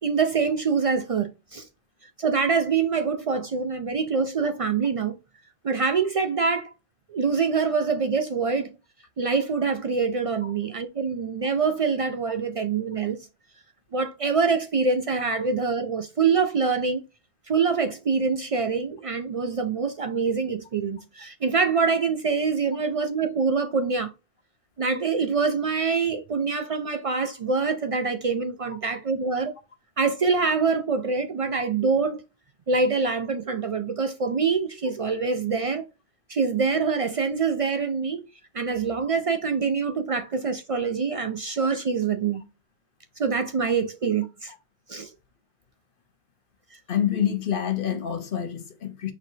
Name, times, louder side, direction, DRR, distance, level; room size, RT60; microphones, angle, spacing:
voice 1, 0.0-1.7 2.2-5.2 5.6-6.7 7.1-8.7 9.2-13.2 13.9-17.0 17.5-24.1 24.8-29.5 30.0-32.2 32.7-35.8 36.3-38.2 38.5-42.4 43.2-44.5 44.9-45.1, right 5 dB, 65° right, 0.3 m, -25 dB
voice 2, 46.9-49.1, left 9 dB, 55° left, 0.9 m, -27 dB
4.5 x 4.0 x 2.7 m
omnidirectional pair, 1.1 m